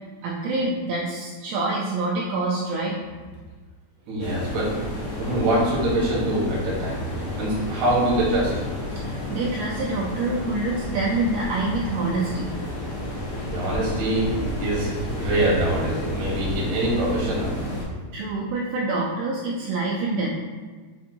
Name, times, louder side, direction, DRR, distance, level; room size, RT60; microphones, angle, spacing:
voice 1, 0.2-3.0 9.0-12.5 18.1-20.3, right 2 dB, 85° right, -4 dB, 2.2 m, -26 dB
voice 2, 4.1-4.8 5.2-7.1 7.4-8.6 13.3-17.6, right 1 dB, 70° right, -5 dB, 1.9 m, -24 dB
sound 1, 4.2-17.8, left 1 dB, 70° left, 1.3 m, -31 dB
6.6 x 2.6 x 2.7 m, 1.4 s
omnidirectional pair, 5.0 m